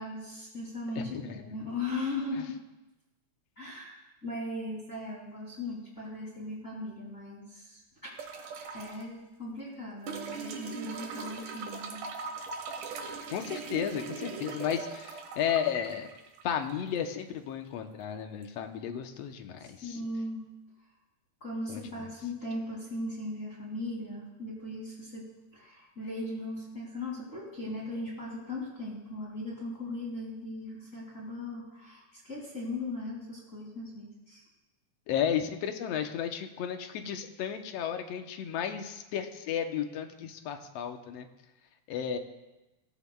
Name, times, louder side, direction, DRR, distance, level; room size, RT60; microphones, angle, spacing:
voice 1, 0.0-2.6 3.6-8.5 8.7-12.1 19.6-20.4 21.4-25.2 25.5-34.4, left 2 dB, 25° left, -4 dB, 2.7 m, -38 dB
voice 2, 1.0-1.4 2.4-2.5 13.3-16.1 16.4-20.0 21.7-21.8 35.1-41.3 41.9-42.2, left 8 dB, 70° left, 5 dB, 1.9 m, -33 dB
sound 1, 8.2-9.0 10.1-17.1 18.4-18.5, right 5 dB, 85° right, 2.7 m, -40 dB
17.0 x 14.5 x 2.3 m, 1.0 s
omnidirectional pair, 3.4 m